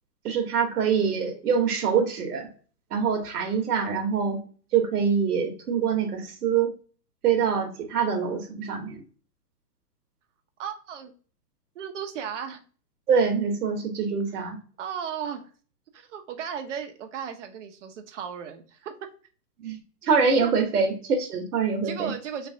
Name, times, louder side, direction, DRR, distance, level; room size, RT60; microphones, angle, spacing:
voice 1, 0.2-2.5 2.9-4.4 4.7-6.7 7.2-9.0 13.1-14.6 19.6-22.1, right 6 dB, 60° right, 1.1 m, -25 dB
voice 2, 10.6-11.1 11.7-12.6 14.8-15.5 15.9-19.1 21.8-22.5, right 8 dB, 45° right, 0.7 m, -35 dB
3.3 x 3.2 x 2.6 m
hypercardioid pair, 150°, 50 cm